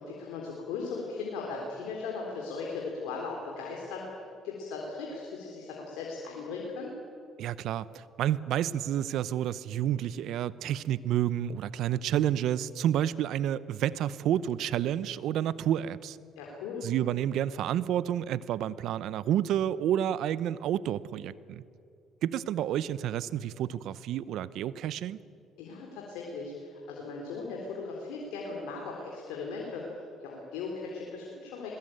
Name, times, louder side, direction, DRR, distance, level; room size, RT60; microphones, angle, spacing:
voice 1, 0.0-4.0 4.4-6.9 16.4-16.8 25.6-31.8, left 4 dB, 85° left, -1 dB, 3.7 m, -38 dB
voice 2, 7.4-16.2 16.8-21.6 22.2-25.2, right 11 dB, 70° right, 18 dB, 0.7 m, -30 dB
21.5 x 20.0 x 9.1 m, 2.5 s
supercardioid pair, 65°, 0 cm